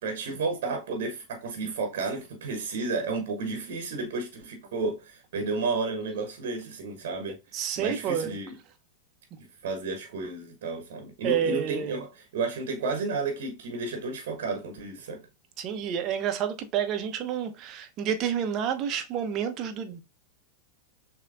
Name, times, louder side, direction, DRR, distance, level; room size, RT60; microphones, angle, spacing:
voice 1, 0.0-8.6 9.4-15.2, right 3 dB, 60° right, 1.0 m, -32 dB
voice 2, 7.5-8.4 11.2-12.0 15.6-20.0, right 8 dB, 40° right, 0.8 m, -29 dB
6.5 x 2.9 x 2.5 m
figure-of-eight pair, 90°, 0 cm